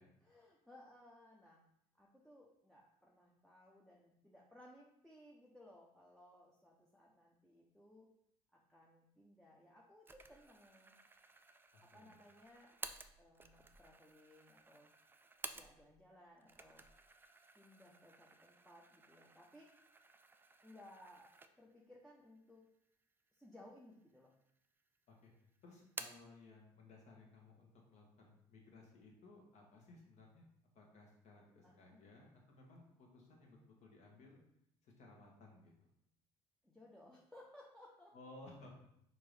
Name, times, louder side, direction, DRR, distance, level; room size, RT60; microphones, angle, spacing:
voice 1, 0.2-1.6 2.0-8.1 8.5-10.9 11.8-12.8 13.2-14.9 15.5-16.8 17.5-19.7 20.6-22.6 23.3-24.3 31.6-32.0 36.6-38.2, left 1 dB, 5° left, -3 dB, 0.7 m, -61 dB
sound 1, 10.1-16.1 16.4-21.9 22.3-22.4 23.2-23.9 24.2-25.0 25.2-26.4, right 3 dB, 15° right, 0.3 m, -54 dB
voice 2, 11.7-12.2 25.1-25.3 25.6-30.4 30.7-34.4 34.8-35.9 38.1-38.7, left 2 dB, 50° left, 0 dB, 1.3 m, -59 dB
4.4 x 2.7 x 3.3 m, 0.75 s
hypercardioid pair, 70°, 14 cm